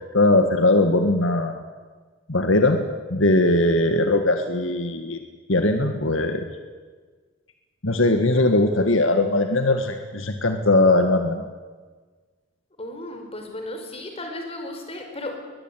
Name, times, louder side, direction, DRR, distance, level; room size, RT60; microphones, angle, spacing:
voice 1, 0.1-1.6 2.3-2.8 3.1-5.2 5.5-6.5 7.8-11.5, left 2 dB, 75° left, 6 dB, 1.9 m, -20 dB
voice 2, 12.8-15.3, left 1 dB, 30° left, 4 dB, 4.9 m, -34 dB
21.5 x 21.0 x 9.3 m, 1.4 s
head